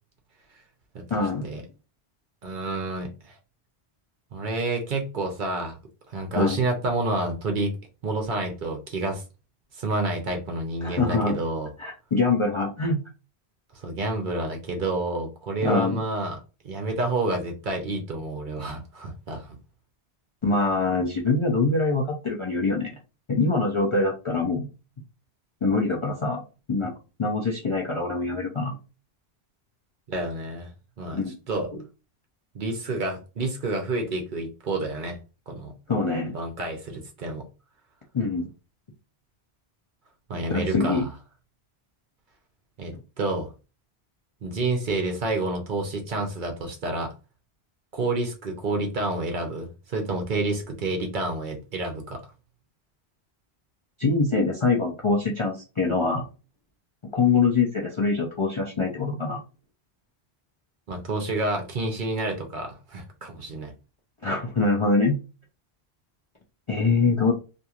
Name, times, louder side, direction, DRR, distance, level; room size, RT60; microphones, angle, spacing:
voice 1, 1.1-1.5 6.3-6.6 10.8-11.4 11.8-13.0 15.6-16.0 20.4-23.0 23.3-24.7 25.6-26.4 26.7-26.9 27.2-28.8 31.1-31.3 35.9-36.4 38.1-38.5 40.5-41.0 54.0-56.2 57.1-59.4 64.2-65.2 66.7-67.3, left 3 dB, 45° left, -2 dB, 0.4 m, -24 dB
voice 2, 2.4-3.4 4.3-5.8 6.1-7.7 8.0-9.2 9.7-11.7 13.7-16.4 16.6-19.6 30.1-30.7 31.0-31.7 32.5-35.2 35.5-35.7 36.3-37.4 40.3-41.1 42.8-43.5 44.4-47.1 47.9-52.2 60.9-63.7, right 2 dB, 55° right, 3 dB, 0.7 m, -29 dB
2.9 x 2.5 x 2.3 m, 0.31 s
omnidirectional pair, 1.1 m